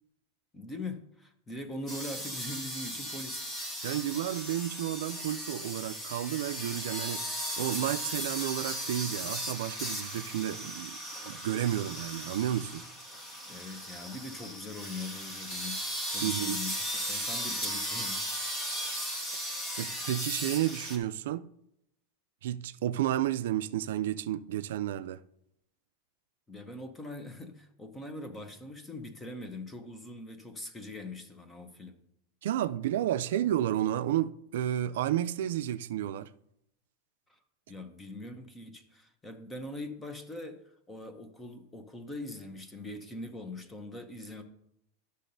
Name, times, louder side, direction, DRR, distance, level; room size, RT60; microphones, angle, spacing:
voice 1, 0.5-3.4 13.5-18.2 26.5-32.0 37.3-37.4 37.7-44.4, left 2 dB, 10° left, 0.7 m, -42 dB
sound 1, 1.9-21.0, equal, 30° left, 1.3 m, -37 dB
voice 2, 3.8-7.2 7.6-12.8 16.2-16.6 19.8-21.5 22.4-25.2 32.4-36.3, right 12 dB, 75° right, 0.3 m, -31 dB
11.5 x 6.5 x 2.7 m
supercardioid pair, 155°, 0 cm